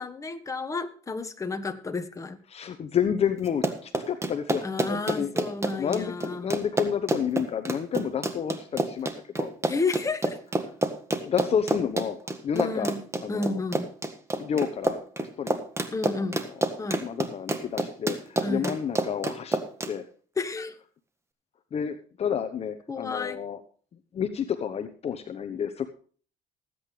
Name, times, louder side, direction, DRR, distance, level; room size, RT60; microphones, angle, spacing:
voice 1, 0.0-2.4 4.6-6.6 9.6-10.4 11.2-11.3 12.5-13.0 13.3-13.9 15.9-16.4 16.8-17.1 18.4-18.8 20.4-20.7 22.9-23.4, left 3 dB, 20° left, 7 dB, 1.4 m, -31 dB
voice 2, 2.5-5.3 5.8-9.5 11.2-12.2 12.4-12.9 13.2-13.6 14.4-15.6 17.0-19.6 19.9-20.0 21.7-23.6 24.1-25.9, left 8 dB, 45° left, 9 dB, 1.0 m, -30 dB
Run, 3.5-19.9, right 2 dB, 20° right, 1.5 m, -28 dB
19.5 x 8.7 x 3.3 m, 0.43 s
cardioid pair, 110°, 15 cm